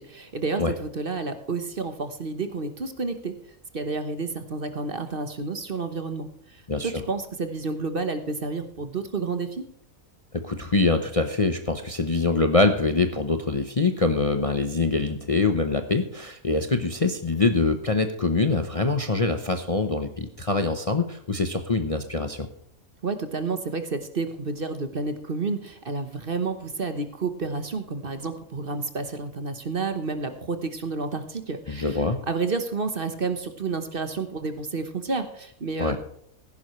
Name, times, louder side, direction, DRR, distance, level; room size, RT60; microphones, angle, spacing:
voice 1, 0.0-3.4 3.7-9.6 23.0-36.0, right 4 dB, 40° right, 8 dB, 1.2 m, -30 dB
voice 2, 6.7-7.0 10.3-22.5 31.7-32.2 35.8-36.0, left 3 dB, 30° left, 7 dB, 0.8 m, -24 dB
15.5 x 11.0 x 3.2 m, 0.69 s
omnidirectional pair, 1.5 m